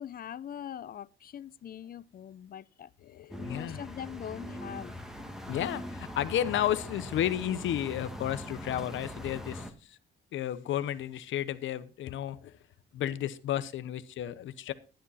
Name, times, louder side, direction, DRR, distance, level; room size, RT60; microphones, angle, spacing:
voice 1, 0.0-2.9 3.5-5.0, left 9 dB, 50° left, 0.6 m, -42 dB
voice 2, 3.0-3.8 5.5-10.0 10.3-12.6 12.9-14.7, left 11 dB, 75° left, 1.0 m, -32 dB
sound 1, 3.3-9.7, equal, ahead, 2.1 m, -41 dB
11.5 x 10.0 x 4.1 m
cardioid pair, 90°, 20 cm